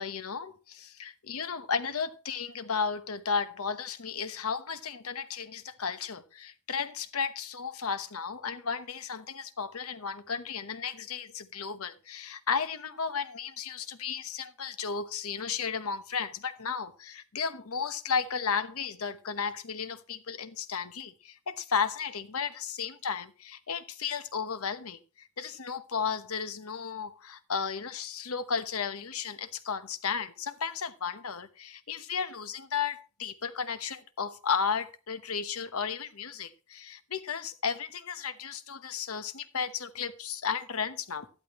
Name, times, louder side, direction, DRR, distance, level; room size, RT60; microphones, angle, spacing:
voice 1, 0.0-41.3, left 6 dB, 80° left, 1.0 m, -34 dB
12.5 x 12.0 x 3.1 m
head